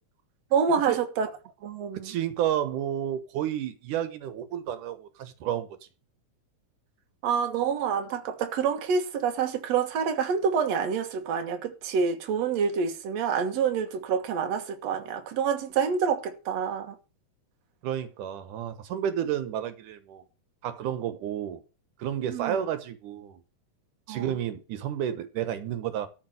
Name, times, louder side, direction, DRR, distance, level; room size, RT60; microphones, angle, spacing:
voice 1, 0.5-1.3 1.6-2.1 7.2-17.0 22.3-22.6 24.1-24.2, right 6 dB, 60° right, 2.5 m, -27 dB
voice 2, 2.0-5.8 17.8-20.2 20.6-21.6 22.0-23.4 24.1-26.1, right 10 dB, 90° right, 2.7 m, -31 dB
13.5 x 5.2 x 8.0 m
omnidirectional pair, 3.5 m